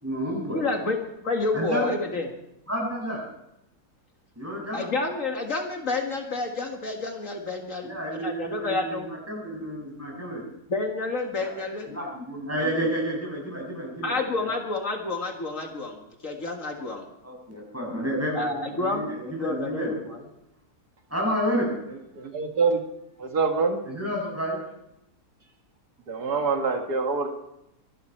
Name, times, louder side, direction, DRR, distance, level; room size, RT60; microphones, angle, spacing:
voice 1, 0.0-0.6 1.5-1.9 2.7-3.2 4.4-4.8 7.8-10.4 11.4-14.5 17.2-20.0 21.1-21.7 23.9-24.6, equal, 10° right, -2 dB, 6.9 m, -30 dB
voice 2, 0.5-1.0 1.2-2.3 4.7-9.1 10.7-12.0 14.0-16.0 16.2-17.1 18.3-19.1 19.4-20.2, left 3 dB, 55° left, 3 dB, 2.2 m, -29 dB
voice 3, 22.2-22.8 23.2-23.8 26.1-27.3, right 4 dB, 85° right, 4 dB, 2.3 m, -25 dB
25.0 x 12.0 x 4.5 m, 0.83 s
omnidirectional pair, 1.6 m